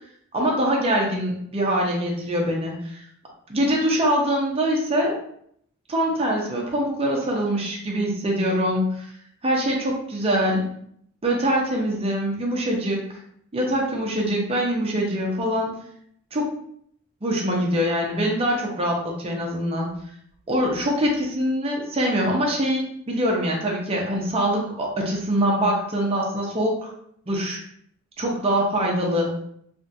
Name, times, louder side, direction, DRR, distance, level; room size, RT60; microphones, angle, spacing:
voice 1, 0.3-3.0 3.5-5.2 5.9-9.1 9.4-10.7 11.2-13.2 13.5-15.7 16.3-16.5 17.2-19.9 20.5-26.9 27.3-27.6 28.2-29.4, equal, 30° right, -2 dB, 0.6 m, -23 dB
3.3 x 2.5 x 2.7 m, 0.68 s
head